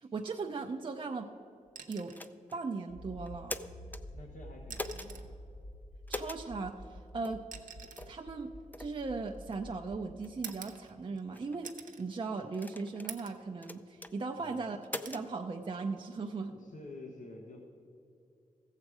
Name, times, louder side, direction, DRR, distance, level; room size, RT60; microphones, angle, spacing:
voice 1, 0.0-1.3 1.9-2.1 2.5-3.6 6.1-7.4 8.1-8.5 8.8-11.7 12.0-14.8 15.1-16.5, right 4 dB, 40° right, 3 dB, 0.5 m, -38 dB
sound 1, 1.7-2.4 3.8-3.9 4.6-5.4 6.5-9.6 10.4-11.3 11.6-12.1 12.5-12.6 13.1-13.5 13.9-14.5 14.9-15.2 16.7-16.9, right 6 dB, 90° right, 0.8 m, -48 dB
sound 2, 2.1-2.6 3.3-4.0 4.7-5.1 6.1-6.4 7.2-7.4 8.0-8.2 8.7-8.9 9.5-9.6 10.2-10.6 11.3-11.7 12.5-13.1 13.6-14.1 14.8-15.3, left 2 dB, 15° left, 0.4 m, -42 dB
Accelerating revving vroom, 2.9-10.2, equal, 50° left, 1.5 m, -49 dB
voice 2, 4.1-5.3 14.4-14.7 16.4-17.9, left 2 dB, 75° left, 1 dB, 1.0 m, -49 dB
15.0 x 7.4 x 4.8 m, 2.6 s
wide cardioid pair, 95°, 13 cm